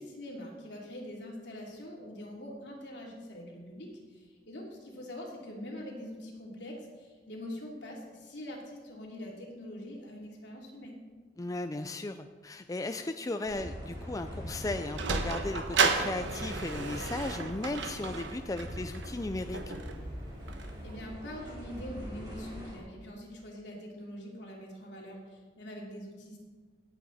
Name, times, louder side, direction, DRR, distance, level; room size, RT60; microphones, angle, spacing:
voice 1, 0.0-11.0 20.8-26.4, left 1 dB, 75° left, -2 dB, 3.1 m, -44 dB
voice 2, 11.4-19.7, left 2 dB, 20° left, 8 dB, 0.4 m, -36 dB
sound 1, 13.5-22.8, equal, 25° right, 4.4 m, -43 dB
Sliding door, 14.5-21.1, right 5 dB, 90° right, 1.2 m, -34 dB
17.5 x 8.5 x 4.2 m, 1.5 s
head